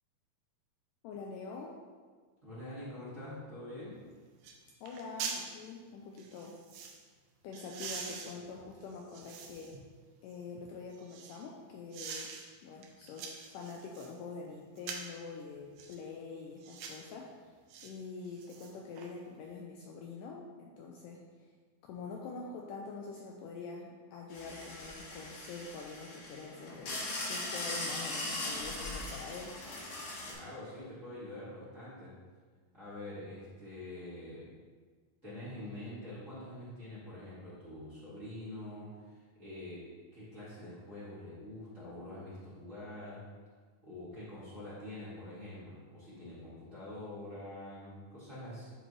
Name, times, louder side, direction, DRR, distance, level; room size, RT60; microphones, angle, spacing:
voice 1, 1.0-1.8 4.8-6.6 7.4-9.8 10.2-12.3 12.6-17.5 17.8-21.3 21.8-29.6, left 4 dB, 80° left, 0 dB, 2.0 m, -45 dB
voice 2, 2.4-4.0 30.2-32.1 32.7-34.5 35.2-43.2 43.8-48.7, left 1 dB, 25° right, -11 dB, 1.8 m, -45 dB
sound 1, 3.9-4.0 4.4-4.6 4.8-5.4 6.2-7.0 7.5-9.8 10.3-11.4 11.9-12.4 12.8-14.1 14.8-15.2 15.8-16.0 16.6-17.0 17.7-17.9 18.3-19.1 19.4-19.5, right 5 dB, 75° right, 2.0 m, -44 dB
sound 2, 24.3-30.3, left 2 dB, 60° left, 1.9 m, -40 dB
10.5 x 3.9 x 3.2 m, 1.5 s
omnidirectional pair, 4.2 m